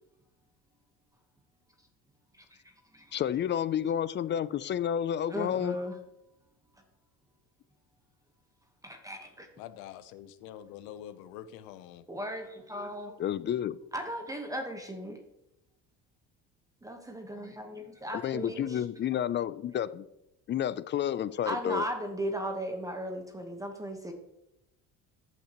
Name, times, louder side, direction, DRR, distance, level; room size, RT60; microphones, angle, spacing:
voice 1, 2.4-3.1 5.3-6.0 8.8-9.5 12.1-13.1 13.9-15.2 16.8-18.8 21.5-24.1, equal, 10° right, 4 dB, 1.1 m, -37 dB
voice 2, 3.1-5.8 13.2-13.8 18.1-20.1 20.5-21.8, left 10 dB, 35° left, 16 dB, 0.4 m, -30 dB
voice 3, 9.6-12.0, left 10 dB, 90° left, 14 dB, 0.7 m, -45 dB
14.0 x 5.9 x 3.0 m, 0.87 s
cardioid pair, 110°, 34 cm